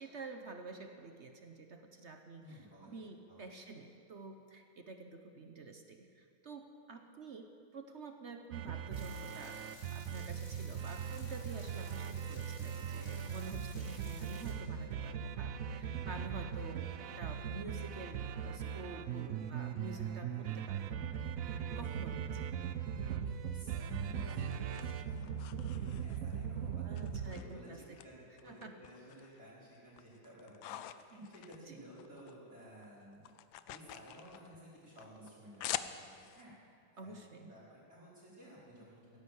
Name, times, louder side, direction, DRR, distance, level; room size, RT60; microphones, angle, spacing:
voice 1, 0.0-9.6 9.9-21.0 21.8-22.4 26.8-28.0 28.4-28.7 31.7-31.8 37.0-37.5, right 3 dB, 50° right, 5 dB, 0.9 m, -49 dB
voice 2, 2.4-2.9 3.3-3.6 18.9-19.3 19.9-20.6 21.9-22.0 23.2-36.5 36.9-39.2, equal, 30° right, -8 dB, 5.7 m, -55 dB
sound 1, 8.5-27.4, right 8 dB, 75° right, 0.7 m, -40 dB
sound 2, 8.9-14.5, left 1 dB, 25° left, 3.8 m, -57 dB
sound 3, 23.6-26.5 26.9-28.1 28.4-29.4 29.8-32.4 32.6-36.4, left 12 dB, 75° left, 1.3 m, -46 dB
17.0 x 10.5 x 8.2 m, 2.4 s
omnidirectional pair, 2.2 m